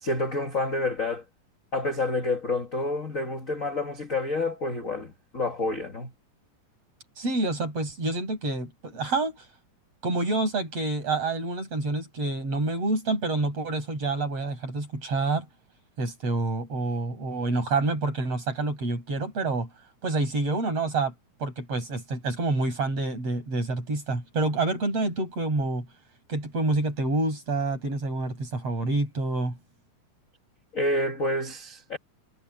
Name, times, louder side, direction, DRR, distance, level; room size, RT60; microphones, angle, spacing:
voice 1, 0.0-1.2 1.7-6.1 30.7-32.0, left 2 dB, 45° left, 1.0 m, -28 dB
voice 2, 7.2-9.5 10.0-15.5 16.0-19.7 20.0-21.1 21.4-25.9 26.3-29.6, right 2 dB, 45° right, 7.1 m, -27 dB
omnidirectional pair, 4.0 m